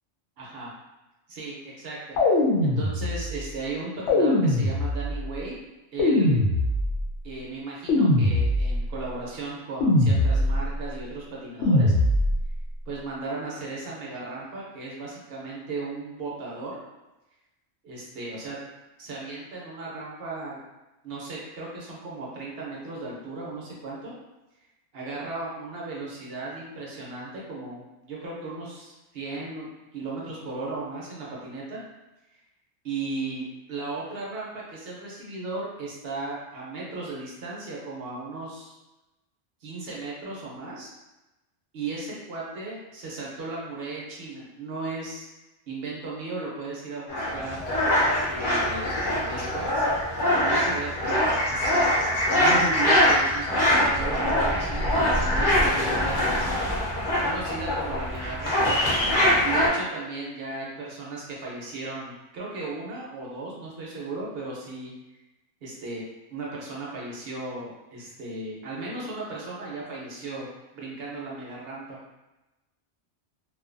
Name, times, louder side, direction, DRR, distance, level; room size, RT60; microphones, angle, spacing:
voice 1, 0.4-0.7 1.3-2.2 2.6-5.6 5.9-6.4 7.2-11.9 12.9-16.8 17.8-18.6 19.0-20.6 21.0-24.1 24.9-29.7 29.9-31.8 32.3-32.4 32.8-38.7 39.6-40.9 41.7-45.3 45.7-47.6 48.3-48.9 49.2-49.9 50.3-51.9 52.3-56.5 57.2-58.8 59.4-64.9 65.6-66.0 66.3-70.5 70.7-72.0, right 3 dB, 65° right, -4 dB, 0.9 m, -36 dB
sound 1, 2.2-3.4 4.1-5.2 6.0-7.1 7.9-8.9 9.8-10.7 11.6-12.5, left 1 dB, 80° left, 0.9 m, -22 dB
sound 2, 47.1-59.7, left 1 dB, 50° left, 0.8 m, -23 dB
2.6 x 2.2 x 2.5 m, 1.0 s
omnidirectional pair, 1.2 m